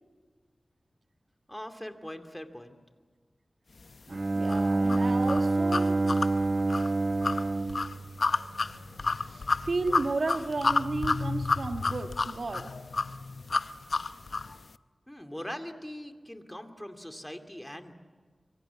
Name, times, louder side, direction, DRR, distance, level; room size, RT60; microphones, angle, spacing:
voice 1, 1.5-2.8 15.1-17.9, equal, 10° left, 7 dB, 2.5 m, -41 dB
Bowed string instrument, 4.1-8.9, right 2 dB, 55° right, 1.2 m, -27 dB
voice 2, 4.3-6.0 9.0-12.7, right 3 dB, 70° right, 6 dB, 1.6 m, -33 dB
sound 1, 4.5-14.6, left 3 dB, 75° left, 0.6 m, -30 dB
26.5 x 25.0 x 7.1 m, 1.5 s
wide cardioid pair, 65°, 0 cm